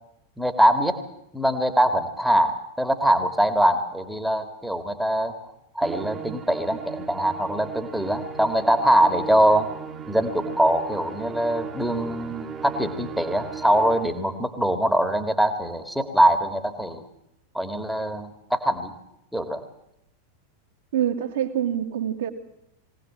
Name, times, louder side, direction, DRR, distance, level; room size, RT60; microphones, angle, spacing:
voice 1, 0.4-1.0 1.3-5.3 5.7-9.8 10.1-17.0 17.5-18.9 19.3-19.6, right 1 dB, ahead, 2.3 m, -23 dB
Musical instrument, 5.8-14.3, right 6 dB, 25° right, 2.1 m, -37 dB
voice 2, 20.9-22.3, right 10 dB, 60° right, 2.6 m, -25 dB
23.0 x 18.0 x 7.6 m
figure-of-eight pair, 90°, 0 cm